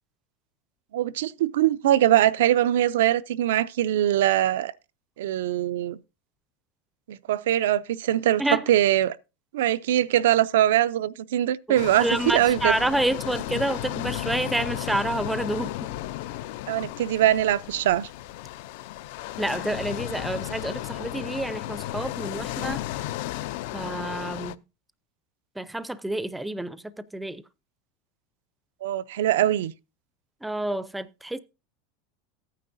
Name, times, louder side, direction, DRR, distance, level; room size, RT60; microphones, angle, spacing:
voice 1, 0.9-4.7 5.2-6.0 7.1-8.4 8.7-9.2 9.5-12.7 16.7-18.1 28.8-29.7, right 12 dB, 90° right, 0.5 m, -22 dB
voice 2, 11.7-15.8 19.4-23.0 23.7-24.6 25.6-27.4 30.4-31.4, right 1 dB, 5° right, 0.5 m, -29 dB
sound 1, 11.8-24.6, left 15 dB, 65° left, 0.4 m, -34 dB
14.5 x 9.3 x 2.6 m
supercardioid pair, 155°, 0 cm